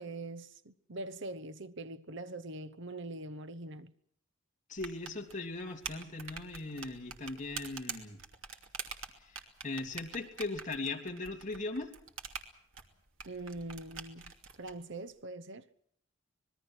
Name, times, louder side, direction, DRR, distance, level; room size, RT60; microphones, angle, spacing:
voice 1, 0.0-3.9 13.2-14.3 14.6-15.7, right 2 dB, 60° right, 1.0 m, -43 dB
voice 2, 4.7-8.2 9.2-11.9, left 2 dB, 40° left, 2.9 m, -39 dB
sound 1, 4.8-14.7, right 6 dB, 80° right, 2.7 m, -45 dB
25.5 x 21.0 x 6.2 m
head